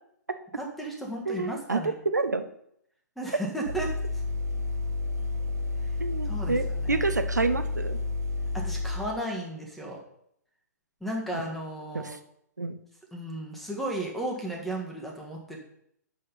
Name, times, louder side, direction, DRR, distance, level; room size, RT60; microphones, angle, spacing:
voice 1, 0.6-1.9 3.2-3.9 6.2-7.1 8.5-10.0 11.0-12.1 13.1-15.6, right 1 dB, ahead, -1 dB, 1.7 m, -34 dB
voice 2, 1.3-2.4 6.0-8.0 11.9-12.2 12.6-12.8, right 3 dB, 80° right, 9 dB, 0.7 m, -28 dB
sound 1, 3.7-9.0, left 3 dB, 60° right, 1.6 m, -30 dB
7.4 x 5.9 x 5.6 m, 0.72 s
figure-of-eight pair, 115°, 9 cm